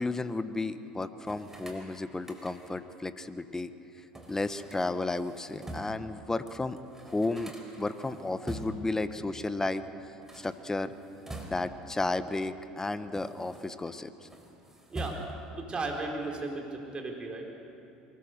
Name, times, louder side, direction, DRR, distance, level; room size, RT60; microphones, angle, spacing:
voice 1, 0.0-3.7 4.3-6.8 7.0-10.9 11.5-14.3, left 2 dB, 15° left, 12 dB, 1.1 m, -33 dB
sound 1, 1.2-2.9 4.1-6.1 6.5-6.6 6.8-9.0 10.1-11.9 12.6-13.9 14.2-15.6, right 1 dB, 10° right, 4.1 m, -45 dB
voice 2, 15.6-17.5, right 3 dB, 25° right, 1 dB, 4.3 m, -35 dB
23.5 x 20.5 x 6.7 m, 2.7 s
figure-of-eight pair, 70°, 4 cm